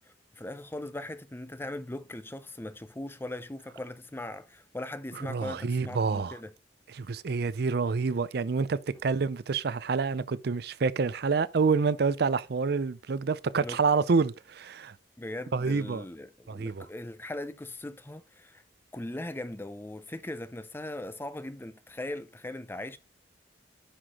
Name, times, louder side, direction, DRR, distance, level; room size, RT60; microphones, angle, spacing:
voice 1, 0.1-6.5 13.6-13.8 15.2-18.6 18.9-23.0, left 1 dB, 15° left, 0.5 m, -39 dB
voice 2, 5.3-6.4 6.9-14.9 15.5-16.0 16.5-16.9, right 4 dB, 65° right, 0.5 m, -27 dB
9.9 x 5.8 x 2.9 m
head